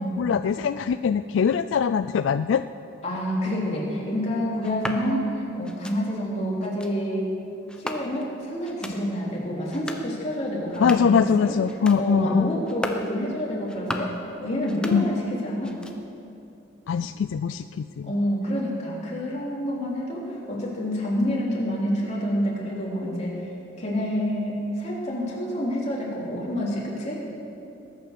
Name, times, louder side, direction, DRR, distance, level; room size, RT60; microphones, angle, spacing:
voice 1, 0.0-2.6 10.8-12.5 14.9-15.1 16.9-18.1, left 6 dB, 75° left, 11 dB, 0.3 m, -22 dB
voice 2, 3.0-7.3 7.7-11.6 11.9-14.1 14.4-15.8 18.0-23.3 23.8-27.2, equal, 35° left, -5 dB, 3.4 m, -28 dB
sound 1, 4.6-5.0 5.6-6.0 6.6-6.9 7.7-8.3 8.6-9.0 9.6-10.1 10.6-11.2 11.6-12.0 12.6-13.1 13.6-14.2 14.6-15.3 15.6-16.2, left 1 dB, 5° left, 0.8 m, -36 dB
20.5 x 9.1 x 6.7 m, 2.8 s
head